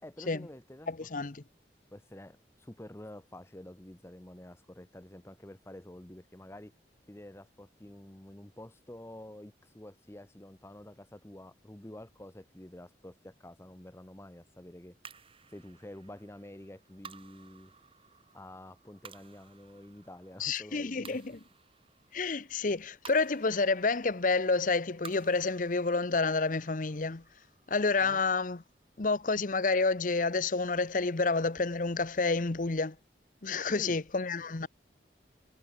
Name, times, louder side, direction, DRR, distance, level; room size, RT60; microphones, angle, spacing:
voice 1, 0.0-1.3 1.9-6.7 7.1-15.0 15.5-17.7 18.3-21.2 28.0-28.2 33.7-34.0, left 1 dB, 15° left, 0.9 m, -49 dB
voice 2, 0.9-1.4 20.4-21.2 22.1-27.2 27.7-28.6 29.0-33.0 33.4-34.7, left 3 dB, 50° left, 0.8 m, -29 dB
sound 1, 15.0-29.5, right 6 dB, 30° right, 1.7 m, -56 dB
head